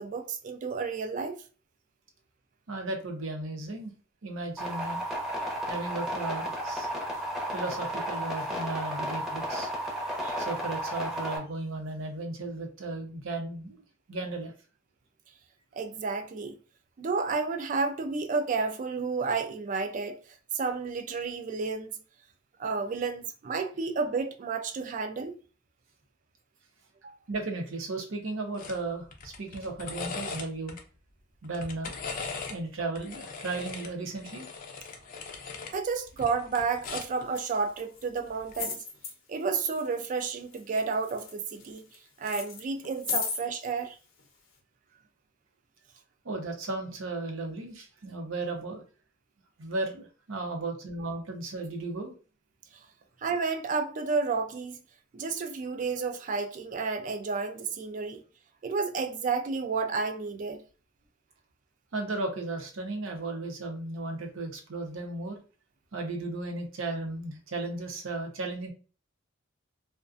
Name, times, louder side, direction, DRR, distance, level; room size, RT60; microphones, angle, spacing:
voice 1, 0.0-1.4 15.7-16.6 17.0-20.2 20.5-21.9 22.6-25.3 27.0-27.1 35.7-38.8 39.3-41.8 42.2-44.0 53.2-54.8 55.1-58.2 58.6-60.6, right 4 dB, 40° right, 0.3 m, -31 dB
voice 2, 2.7-3.9 4.2-5.0 5.7-6.9 7.5-9.7 10.2-13.8 14.1-14.5 27.3-30.8 31.4-32.2 32.5-34.5 46.2-48.8 49.6-52.1 61.9-65.4 65.9-68.7, right 2 dB, 85° right, 0.7 m, -35 dB
sound 1, 4.6-11.4, equal, ahead, 0.6 m, -33 dB
sound 2, 28.6-28.8 29.1-30.8 31.4-32.6 33.0-35.8 36.1-37.2 38.4-38.6, left 4 dB, 45° left, 0.4 m, -39 dB
Coins On Table, 36.8-37.0 37.3-38.0 38.5-39.1 39.7-40.2 40.5-41.9 42.2-43.4 44.2-44.3, left 5 dB, 85° left, 0.6 m, -35 dB
2.4 x 2.1 x 2.4 m
head